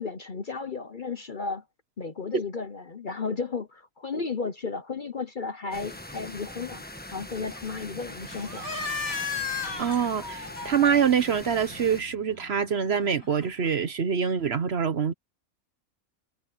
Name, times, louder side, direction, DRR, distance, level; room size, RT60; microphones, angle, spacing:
voice 1, 0.0-1.6 2.0-6.8 7.1-8.7, left 4 dB, 40° left, 0.9 m, -33 dB
sound 1, 5.7-12.0, left 1 dB, 5° left, 1.3 m, -42 dB
sound 2, 8.2-13.7, left 5 dB, 75° left, 6.2 m, -36 dB
voice 2, 9.8-15.1, right 7 dB, 50° right, 1.0 m, -25 dB
omnidirectional pair, 1.5 m